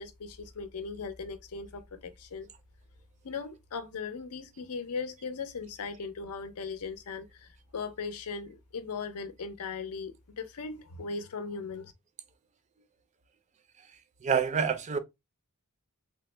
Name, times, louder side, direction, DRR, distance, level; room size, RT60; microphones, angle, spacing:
voice 1, 0.0-2.5 3.2-11.9, left 5 dB, 80° left, 0.5 m, -38 dB
voice 2, 14.2-15.0, right 6 dB, 30° right, 0.4 m, -27 dB
3.3 x 2.1 x 3.1 m
head